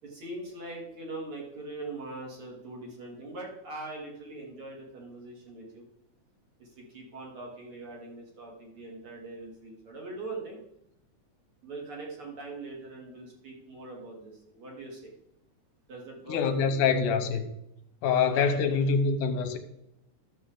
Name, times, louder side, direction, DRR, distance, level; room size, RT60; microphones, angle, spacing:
voice 1, 0.0-5.8 6.6-10.6 11.6-15.1 15.9-16.7 18.3-18.8, right 2 dB, 45° right, 3.3 m, -42 dB
voice 2, 16.3-17.5 18.0-19.6, left 5 dB, 80° left, 2.5 m, -25 dB
12.0 x 7.2 x 3.9 m
omnidirectional pair, 3.7 m